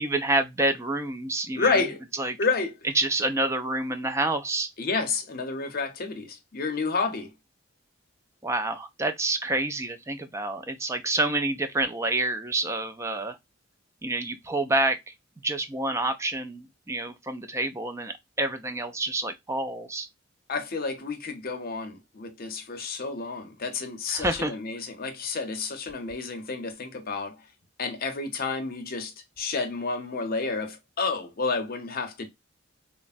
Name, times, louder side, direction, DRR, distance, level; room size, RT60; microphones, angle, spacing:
voice 1, 0.0-1.8 2.2-2.4 3.0-4.7 8.4-13.4 14.0-15.1 15.4-20.1 24.1-24.5, right 2 dB, 15° right, 0.3 m, -28 dB
voice 2, 1.5-2.0 2.4-2.8 4.8-7.3 20.5-27.5 27.8-32.3, left 4 dB, 45° left, 0.6 m, -30 dB
3.2 x 2.0 x 2.4 m
head